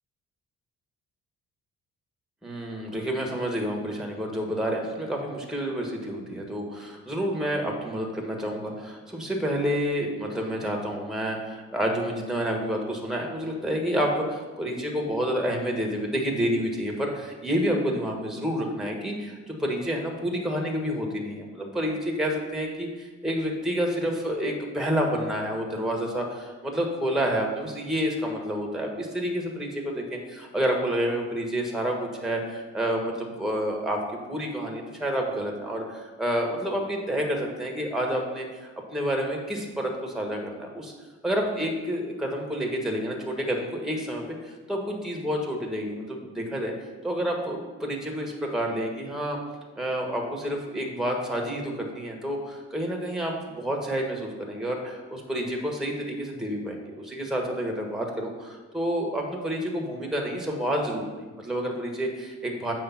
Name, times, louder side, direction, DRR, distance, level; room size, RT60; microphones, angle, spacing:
voice 1, 2.4-34.0 34.3-40.9 41.2-46.7 47.0-49.4 49.8-62.7, equal, ahead, 0 dB, 1.4 m, -29 dB
7.6 x 3.3 x 5.8 m, 1.3 s
cardioid pair, 90°, 30 cm